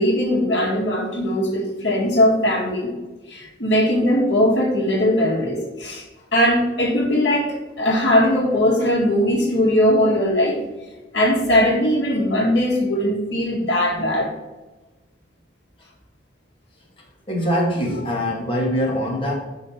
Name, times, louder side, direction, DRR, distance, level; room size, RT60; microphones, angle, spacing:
voice 1, 0.0-2.9 3.3-6.0 6.3-10.6 11.1-14.3, left 1 dB, 80° left, -2 dB, 2.0 m, -19 dB
voice 2, 17.3-19.3, equal, 30° left, -4 dB, 1.9 m, -23 dB
5.6 x 5.6 x 5.9 m, 1.2 s
head